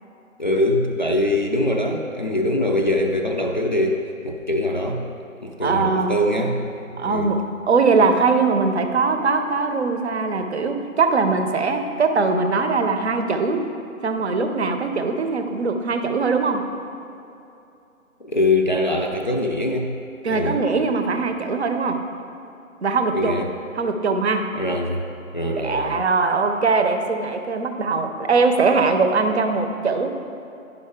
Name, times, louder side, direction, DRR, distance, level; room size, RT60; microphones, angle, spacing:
voice 1, 0.4-5.1 5.4-7.4 18.2-19.9 20.3-20.6 23.1-23.5 24.5-25.1 25.3-26.0, left 1 dB, 35° left, 0 dB, 0.4 m, -23 dB
voice 2, 5.6-6.3 7.0-7.4 7.7-13.7 14.0-16.6 20.2-22.0 22.8-23.4 23.8-24.4 25.5-30.3, right 4 dB, 50° right, 6 dB, 0.7 m, -21 dB
10.5 x 5.2 x 3.6 m, 2.7 s
figure-of-eight pair, 140°, 42 cm